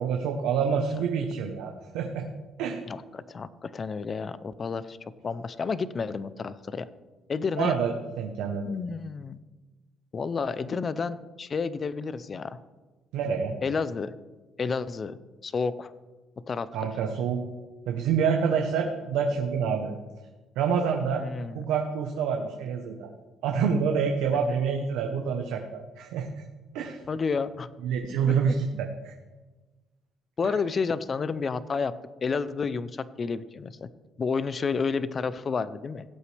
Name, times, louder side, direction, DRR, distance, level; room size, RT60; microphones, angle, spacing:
voice 1, 0.0-2.2 2.6-2.8 7.6-8.8 13.1-13.5 16.7-17.4 17.9-19.9 20.6-21.2 21.5-23.1 23.4-26.3 26.7-27.0 27.8-29.1, right 6 dB, 85° right, 3 dB, 1.0 m, -27 dB
voice 2, 2.9-5.0 5.2-6.9 7.3-7.8 8.7-9.4 10.1-12.6 13.6-14.1 14.6-15.9 16.5-16.9 21.2-21.7 24.3-24.6 27.1-27.7 28.3-28.4 30.4-31.9 32.2-33.9 34.2-36.0, left 5 dB, 40° left, 15 dB, 0.6 m, -30 dB
17.0 x 8.2 x 3.4 m, 1.2 s
cardioid pair, 90°, 0 cm